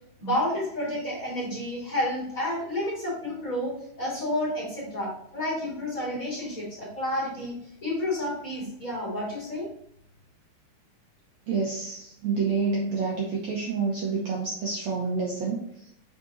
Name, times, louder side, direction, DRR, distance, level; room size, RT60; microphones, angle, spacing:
voice 1, 0.2-9.7, left 1 dB, 25° left, -5 dB, 2.4 m, -30 dB
voice 2, 11.5-15.9, right 4 dB, 85° right, -2 dB, 1.5 m, -28 dB
7.3 x 4.1 x 4.0 m, 0.72 s
omnidirectional pair, 4.6 m